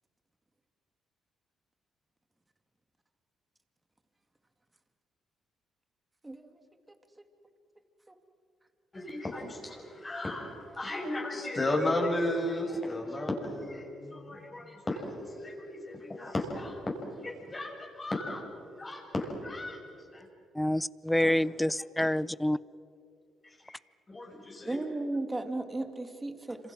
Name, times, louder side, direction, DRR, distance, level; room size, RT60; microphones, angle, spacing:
voice 1, 6.2-6.6 8.1-8.2 24.7-26.7, right 2 dB, 15° right, 7 dB, 2.3 m, -35 dB
voice 2, 8.9-16.8 17.2-18.5 18.8-19.8 20.1-20.3 21.2-21.3 23.4-23.8 24.1-24.8, left 1 dB, 25° left, 0 dB, 6.8 m, -34 dB
voice 3, 20.6-22.6, left 1 dB, 5° left, 21 dB, 0.5 m, -27 dB
29.0 x 26.5 x 6.2 m, 2.4 s
cardioid pair, 90°, 0 cm